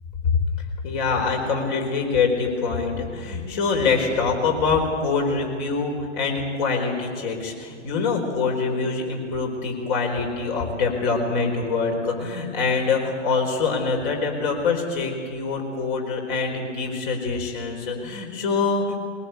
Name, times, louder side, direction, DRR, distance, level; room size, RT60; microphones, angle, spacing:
voice 1, 0.2-19.0, left 4 dB, 35° left, 2 dB, 4.5 m, -24 dB
21.0 x 19.0 x 8.2 m, 2.2 s
figure-of-eight pair, 125°, 37 cm